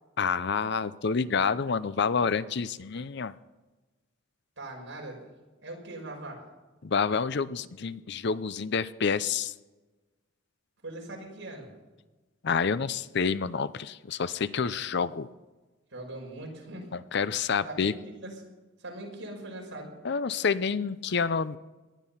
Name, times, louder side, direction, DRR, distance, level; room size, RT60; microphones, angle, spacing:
voice 1, 0.2-3.3 6.8-9.5 12.4-15.3 16.9-17.9 20.0-21.6, left 5 dB, 55° left, 15 dB, 0.6 m, -28 dB
voice 2, 4.6-5.3 5.6-6.5 10.8-11.7 14.5-14.6 15.9-16.9 17.6-18.4 18.8-19.9, right 1 dB, 65° right, 0 dB, 5.6 m, -41 dB
19.0 x 12.5 x 5.7 m, 1.2 s
head